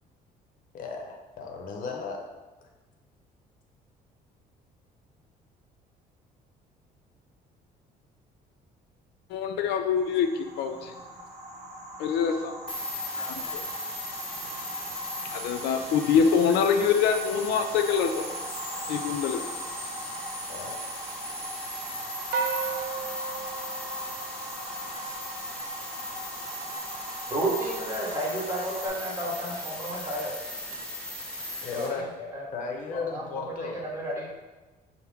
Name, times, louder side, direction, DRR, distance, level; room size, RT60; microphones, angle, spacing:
voice 1, 0.7-2.2 20.5-20.8 31.6-32.0 32.5-33.8, left 4 dB, 55° left, 2 dB, 0.8 m, -35 dB
voice 2, 9.3-10.9 12.0-12.5 13.2-13.6 15.3-18.2 18.9-19.4, left 6 dB, 85° left, 6 dB, 0.5 m, -25 dB
sound 1, 10.0-28.9, right 1 dB, 40° right, 0.7 m, -41 dB
sound 2, 12.7-31.9, left 1 dB, 5° left, 0.9 m, -37 dB
sound 3, 22.3-24.9, right 6 dB, 75° right, 0.4 m, -34 dB
voice 3, 27.3-30.3 31.7-32.5 32.9-34.3, right 1 dB, 15° right, -4 dB, 1.3 m, -32 dB
5.7 x 2.1 x 3.5 m, 1.2 s
cardioid pair, 110°, 17 cm